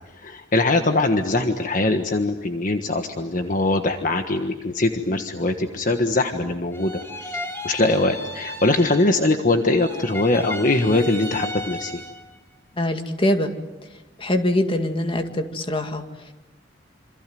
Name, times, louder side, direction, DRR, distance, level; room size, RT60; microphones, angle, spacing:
voice 1, 0.1-6.9 7.2-12.0, left 2 dB, 50° left, 6 dB, 1.5 m, -22 dB
sound 1, 6.7-9.4 9.6-12.4, left 1 dB, 15° left, 2.5 m, -35 dB
voice 2, 12.8-13.5 14.2-16.3, left 1 dB, 30° left, 6 dB, 2.2 m, -23 dB
27.5 x 26.0 x 7.8 m, 1.1 s
head